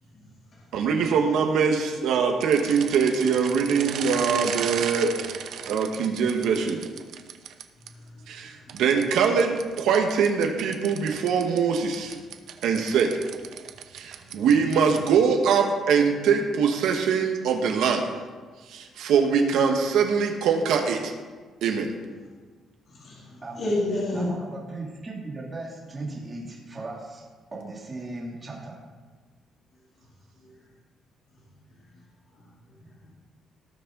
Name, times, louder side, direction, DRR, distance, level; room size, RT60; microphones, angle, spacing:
voice 1, 0.0-0.8 7.8-8.8 14.2-14.4 22.2-22.3 22.9-24.3 29.7-30.1 30.4-30.7 31.3-32.1 32.3-33.1, left 1 dB, 50° left, -8 dB, 3.6 m, -35 dB
voice 2, 0.7-5.1 5.7-6.8 8.3-12.2 12.6-13.2 13.9-18.0 18.7-21.1 21.6-21.9, right 6 dB, 85° right, 2 dB, 1.4 m, -23 dB
sound 1, 2.4-7.9 8.7-15.2, right 8 dB, 65° right, 0.8 m, -36 dB
voice 3, 24.1-27.2 27.5-28.8, right 2 dB, 20° right, -4 dB, 2.8 m, -37 dB
18.5 x 7.4 x 3.9 m, 1.4 s
cardioid pair, 155°, 0 cm